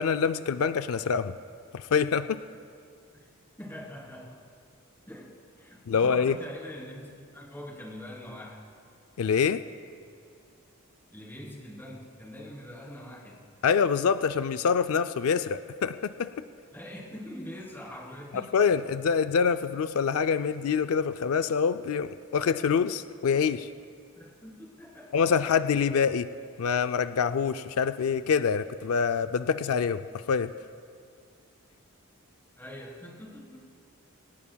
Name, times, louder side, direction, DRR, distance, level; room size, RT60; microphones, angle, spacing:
voice 1, 0.0-1.4 1.7-2.4 5.9-6.4 9.2-9.6 13.6-16.3 18.3-23.7 25.1-26.3 26.6-30.5, left 6 dB, 85° left, 11 dB, 0.4 m, -25 dB
voice 2, 3.6-4.4 5.1-8.6 11.1-13.5 16.7-18.6 24.1-25.1 32.6-33.6, left 1 dB, 10° left, -4 dB, 3.2 m, -43 dB
23.5 x 19.0 x 2.3 m, 2.3 s
head